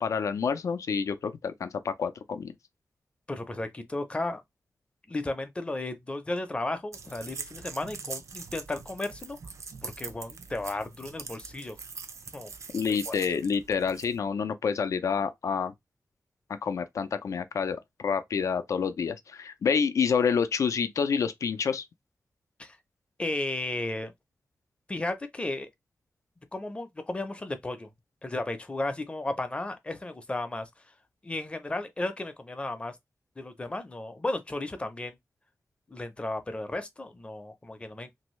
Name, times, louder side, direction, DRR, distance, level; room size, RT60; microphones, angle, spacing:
voice 1, 0.0-2.5 12.7-15.7 16.5-21.8, left 6 dB, 75° left, 0.4 m, -28 dB
voice 2, 3.3-4.4 5.1-9.4 9.8-11.8 12.3-12.5 13.1-13.2 22.6-22.8 23.2-24.1 24.9-25.7 26.5-27.9 28.2-30.7 31.2-33.0 33.4-35.2 35.9-38.1, left 2 dB, 20° left, 0.5 m, -34 dB
sound 1, 6.9-14.2, right 5 dB, 70° right, 0.5 m, -43 dB
2.9 x 2.7 x 3.1 m
wide cardioid pair, 150°, 5 cm